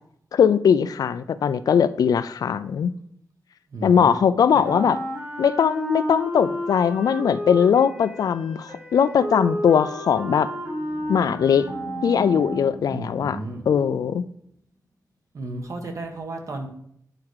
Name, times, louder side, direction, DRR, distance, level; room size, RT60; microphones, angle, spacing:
voice 1, 0.3-2.9 3.8-5.0 5.4-10.5 11.1-11.7 12.0-13.4 13.7-14.2, left 7 dB, 90° left, 14 dB, 0.4 m, -20 dB
voice 2, 3.7-4.2 4.7-4.8 12.9-13.6 15.3-16.7, right 2 dB, 60° right, 4 dB, 1.4 m, -33 dB
Wind instrument woodwind instrument, 4.6-12.9, equal, 30° right, 2.5 m, -32 dB
Animal, 10.5-14.6, left 1 dB, 90° right, 3.5 m, -41 dB
9.1 x 4.8 x 4.7 m, 0.69 s
wide cardioid pair, 150°, 6 cm